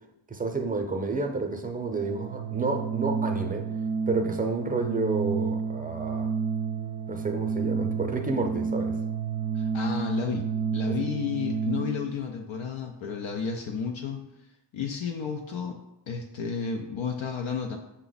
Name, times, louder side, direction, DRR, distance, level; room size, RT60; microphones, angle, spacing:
voice 1, 0.3-3.6 4.1-6.3 7.1-8.9 10.9-11.0, right 3 dB, 20° right, 5 dB, 0.6 m, -30 dB
Organ, 1.9-12.2, right 5 dB, 65° right, 0.5 m, -30 dB
voice 2, 9.5-10.5 10.7-14.2 14.7-15.8 16.1-17.8, left 5 dB, 70° left, 2 dB, 0.6 m, -32 dB
5.7 x 2.2 x 3.9 m, 0.89 s
wide cardioid pair, 70°, 48 cm